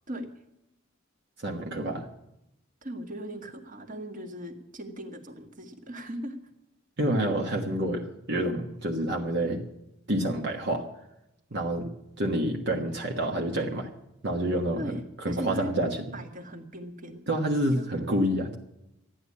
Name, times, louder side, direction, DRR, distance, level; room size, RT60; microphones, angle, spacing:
voice 1, 1.4-2.1 7.0-9.6 10.1-10.8 11.5-11.9 12.2-13.9 14.2-16.2 17.3-18.6, right 1 dB, 55° right, 0 dB, 1.4 m, -28 dB
voice 2, 2.8-6.4 14.8-15.8 16.1-17.2 17.7-18.2, equal, 40° right, 6 dB, 1.7 m, -38 dB
13.5 x 10.0 x 8.5 m, 0.88 s
head